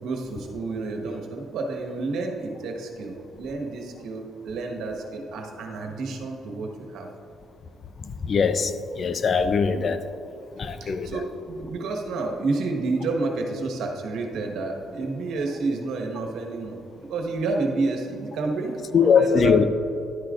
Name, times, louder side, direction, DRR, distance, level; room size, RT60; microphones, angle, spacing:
voice 1, 0.0-7.1 10.8-16.8 17.1-19.6, right 3 dB, 80° right, 2 dB, 1.3 m, -29 dB
voice 2, 8.2-8.7 9.0-10.0 10.6-11.1 18.9-19.6, left 6 dB, 50° left, 11 dB, 0.5 m, -20 dB
11.5 x 9.7 x 2.5 m, 2.8 s
cardioid pair, 90°, 0 cm